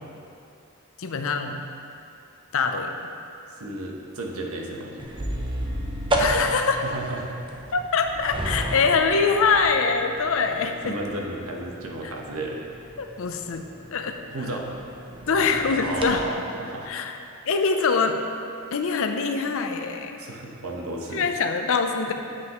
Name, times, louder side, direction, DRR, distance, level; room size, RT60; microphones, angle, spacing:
voice 1, 1.0-1.6 2.5-2.9 6.2-6.9 7.7-11.0 12.0-12.1 13.0-14.3 15.3-16.2 16.9-17.1 17.5-18.2 18.7-20.2 21.1-22.1, left 5 dB, 65° left, 5 dB, 0.6 m, -24 dB
voice 2, 3.6-5.1 6.8-7.3 10.7-12.6 14.3-14.7 15.8-16.9 17.2-17.4 20.2-21.3 22.1-22.2, right 2 dB, 75° right, -1 dB, 1.1 m, -33 dB
sound 1, 5.0-16.2, right 1 dB, 25° right, 0.7 m, -33 dB
9.5 x 7.6 x 3.0 m, 2.6 s
head